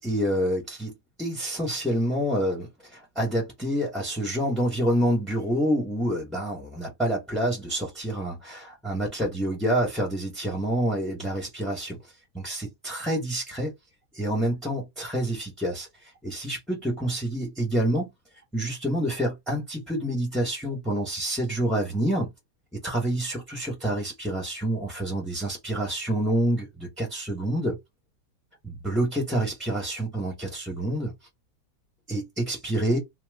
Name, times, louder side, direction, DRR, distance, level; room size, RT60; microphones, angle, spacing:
voice 1, 0.0-12.0 12.3-13.7 14.1-18.1 18.5-22.3 22.7-27.8 28.6-31.1 32.1-33.0, right 1 dB, ahead, 0.8 m, -27 dB
3.0 x 2.2 x 3.4 m
omnidirectional pair, 1.9 m